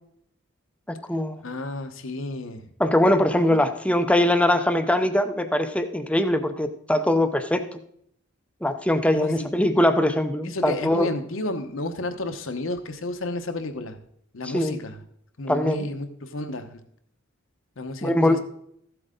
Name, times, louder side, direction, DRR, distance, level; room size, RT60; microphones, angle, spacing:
voice 1, 0.9-1.4 2.8-7.8 8.6-11.1 14.4-14.8 15.5-15.9 18.0-18.4, left 1 dB, 5° left, 8 dB, 0.6 m, -22 dB
voice 2, 1.4-2.6 3.5-3.6 9.1-9.5 10.4-14.0 14.3-15.0 15.4-16.8 17.8-18.4, left 2 dB, 65° left, 7 dB, 1.0 m, -32 dB
14.0 x 7.9 x 3.8 m, 0.69 s
head